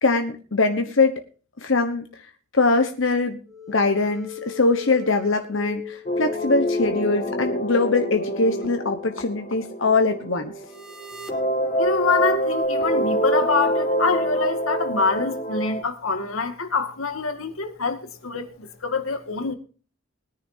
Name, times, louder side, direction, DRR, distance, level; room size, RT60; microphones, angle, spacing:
voice 1, 0.0-1.2 1.6-2.1 2.5-3.4 3.7-10.5, left 3 dB, 65° left, 1.2 m, -22 dB
sound 1, 3.5-12.6, left 4 dB, ahead, 1.8 m, -38 dB
sound 2, 6.1-10.9 11.3-15.8, right 1 dB, 40° left, 2.1 m, -26 dB
voice 2, 11.8-19.5, left 4 dB, 90° left, 2.1 m, -25 dB
21.0 x 9.9 x 2.8 m
head